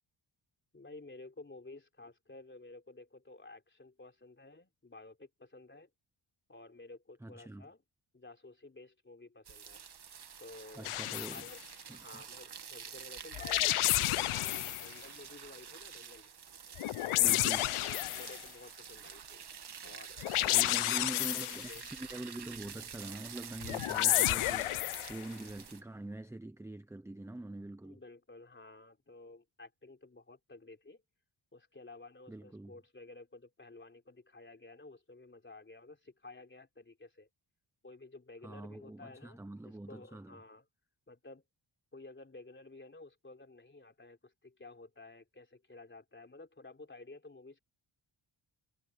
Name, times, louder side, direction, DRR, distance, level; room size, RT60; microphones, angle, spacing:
voice 1, 0.7-5.9 6.5-7.8 8.1-9.8 10.4-11.0 11.3-11.6 11.9-16.3 17.1-17.4 17.8-19.5 19.8-21.8 27.8-31.0 31.5-37.3 37.8-40.7 41.1-41.4 41.9-47.6, left 2 dB, 25° left, 3.7 m, -53 dB
voice 2, 7.2-7.7 10.8-11.4 11.9-12.2 17.2-17.7 20.5-28.0 32.3-32.7 38.4-40.4, right 1 dB, 5° right, 0.5 m, -44 dB
sound 1, 9.4-25.8, right 7 dB, 50° right, 1.4 m, -49 dB
sound 2, 10.8-11.5 13.3-14.9 16.7-18.4 20.2-21.8 23.6-25.2, left 15 dB, 85° left, 0.5 m, -30 dB
wide cardioid pair, 150°, 49 cm